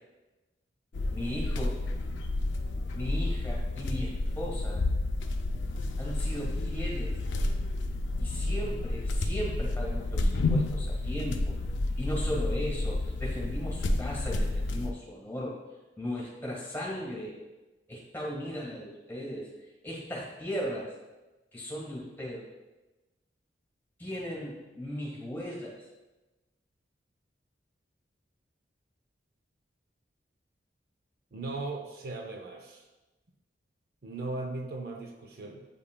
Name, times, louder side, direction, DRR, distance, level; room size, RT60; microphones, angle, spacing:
sound 1, 0.9-14.9, left 2 dB, 90° left, 0.5 m, -30 dB
voice 1, 1.1-1.8 2.9-4.8 6.0-7.2 8.2-11.6 12.0-15.6 16.0-17.4 17.9-19.5 19.8-20.9 21.5-22.5 24.0-25.8, equal, 10° left, -4 dB, 1.4 m, -37 dB
voice 2, 31.3-32.8 34.0-35.6, right 2 dB, 55° right, 3 dB, 0.5 m, -38 dB
8.1 x 5.3 x 2.2 m, 1.1 s
head